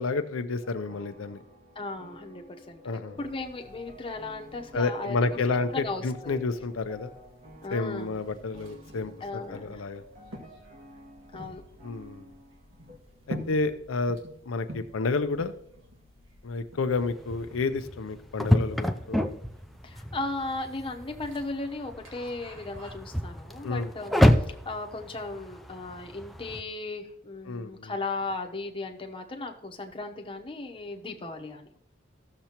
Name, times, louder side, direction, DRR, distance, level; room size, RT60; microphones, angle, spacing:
voice 1, 0.0-1.4 2.8-3.2 4.7-7.1 7.7-10.0 11.8-12.3 13.3-14.2 14.5-15.5 16.4-19.2 23.6-23.9 27.5-27.9, left 3 dB, 85° left, 9 dB, 0.5 m, -30 dB
sound 1, 0.6-13.0, equal, 40° right, 1.5 m, -52 dB
voice 2, 1.7-5.3 5.7-6.4 7.6-8.2 9.2-9.8 11.3-11.6 19.8-24.2 24.5-31.7, left 2 dB, 25° left, 3 dB, 0.9 m, -36 dB
sound 2, 3.2-22.9, equal, 75° right, 1.9 m, -49 dB
sound 3, 16.9-26.6, equal, ahead, 0.4 m, -29 dB
14.5 x 6.7 x 2.9 m, 0.75 s
head